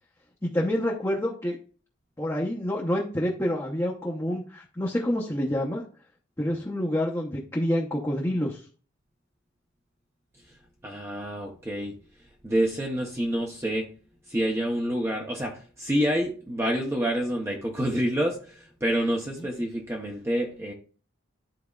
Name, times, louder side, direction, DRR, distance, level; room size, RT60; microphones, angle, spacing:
voice 1, 0.4-1.6 2.2-5.8 6.4-8.6 19.4-19.5, left 1 dB, 15° left, -3 dB, 0.9 m, -27 dB
voice 2, 10.8-11.9 12.4-13.9 14.3-20.7, equal, 15° right, 0 dB, 0.8 m, -28 dB
12.0 x 4.2 x 2.4 m, 0.40 s
head